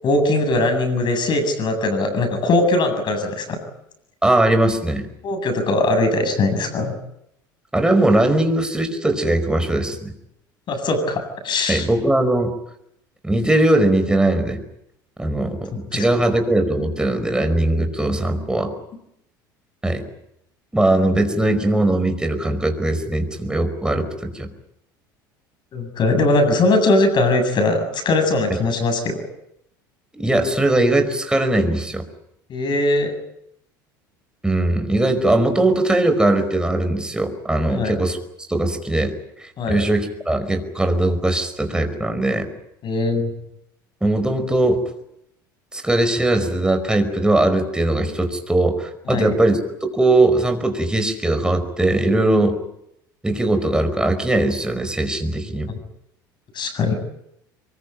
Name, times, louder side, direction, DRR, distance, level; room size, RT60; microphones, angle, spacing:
voice 1, 0.0-3.6 5.2-6.9 10.7-11.9 15.9-16.1 25.7-29.2 32.5-33.1 37.7-37.9 39.6-39.8 42.8-43.3 49.1-49.3 56.5-57.0, left 2 dB, 45° left, 7 dB, 7.9 m, -20 dB
voice 2, 4.2-5.1 7.7-10.1 11.7-12.5 13.2-14.6 15.2-18.7 19.8-20.0 20.7-24.5 30.1-32.0 34.4-38.2 38.5-39.1 39.4-42.5 44.0-44.8 45.7-52.6 53.2-55.7, right 1 dB, 5° right, 7 dB, 5.1 m, -20 dB
23.5 x 22.0 x 8.9 m, 0.78 s
hypercardioid pair, 75°, 11 cm